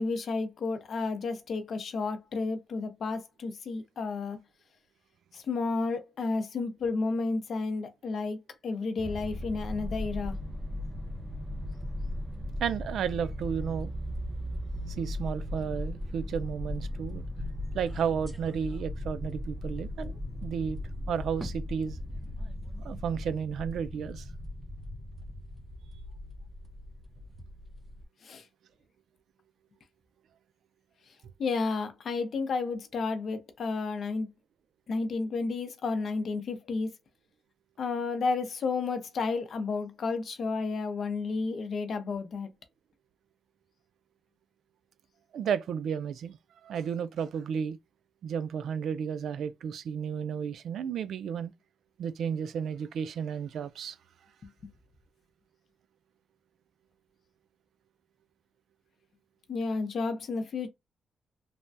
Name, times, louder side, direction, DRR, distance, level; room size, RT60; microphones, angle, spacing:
voice 1, 0.0-4.4 5.3-8.4 8.6-10.4 28.2-28.4 31.4-34.3 34.9-36.9 37.8-42.5 59.5-60.7, left 4 dB, 55° left, 0.6 m, -31 dB
sound 1, 9.0-28.0, left 1 dB, 15° right, 0.4 m, -37 dB
voice 2, 12.6-13.9 14.9-17.2 17.7-20.1 20.4-20.8 21.1-22.0 22.8-24.2 45.3-46.4 46.6-47.8 48.2-51.5 52.0-54.0, right 7 dB, 85° right, 0.3 m, -32 dB
3.3 x 2.2 x 2.6 m
wide cardioid pair, 140°, 0 cm